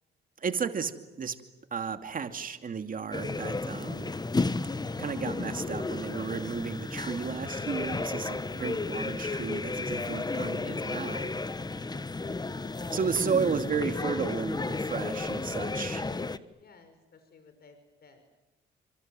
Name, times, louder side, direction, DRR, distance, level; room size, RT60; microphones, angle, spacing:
voice 1, 0.4-0.9 1.2-1.4 1.7-4.1 5.0-11.5 12.9-16.0, right 6 dB, 45° right, 7 dB, 2.6 m, -33 dB
sound 1, 3.1-16.4, left 3 dB, 20° left, 1.4 m, -33 dB
voice 2, 15.6-18.2, left 4 dB, 50° left, 7 dB, 5.2 m, -57 dB
29.5 x 26.0 x 7.8 m, 1.0 s
cardioid pair, 90°, 20 cm